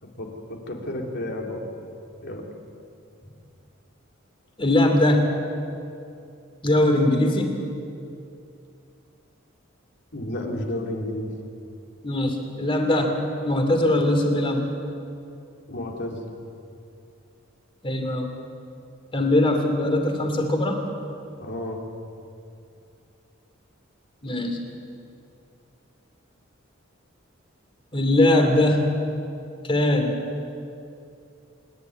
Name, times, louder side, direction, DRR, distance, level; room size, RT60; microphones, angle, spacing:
voice 1, 0.0-1.6 2.2-2.5 10.1-11.3 15.7-16.2 21.4-21.8, left 1 dB, 60° left, 0 dB, 3.2 m, -32 dB
voice 2, 4.6-5.3 6.6-7.5 12.0-13.2 13.4-14.6 17.8-18.3 19.1-20.8 24.2-24.6 27.9-29.0 29.6-30.2, left 1 dB, 25° left, 3 dB, 2.9 m, -21 dB
26.5 x 11.5 x 9.5 m, 2.6 s
head